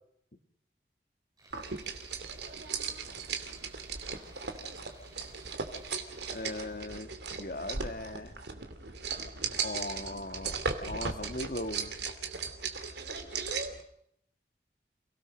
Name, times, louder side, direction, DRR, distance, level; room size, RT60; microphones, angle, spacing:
Tools, 1.4-6.8, right 1 dB, 25° right, 7.6 m, -58 dB
sound 1, 1.5-13.8, right 5 dB, 75° right, 2.7 m, -37 dB
voice 1, 2.2-3.2 3.9-4.8 12.9-13.8, right 2 dB, 60° right, 5 dB, 4.8 m, -46 dB
voice 2, 6.3-7.1 7.4-8.3 9.6-11.9, left 2 dB, 55° left, 7 dB, 1.9 m, -38 dB
29.0 x 18.0 x 6.5 m, 0.70 s
head